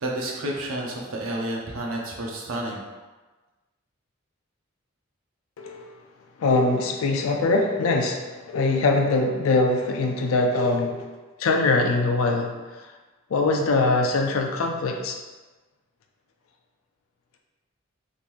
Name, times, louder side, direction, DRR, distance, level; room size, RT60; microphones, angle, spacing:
voice 1, 0.0-2.8, right 1 dB, 85° right, -1 dB, 0.7 m, -30 dB
voice 2, 5.6-5.9 6.4-11.1 11.4-12.5 12.8-12.9 13.3-15.2, left 3 dB, 85° left, 2 dB, 0.4 m, -22 dB
3.6 x 2.9 x 2.5 m, 1.2 s
head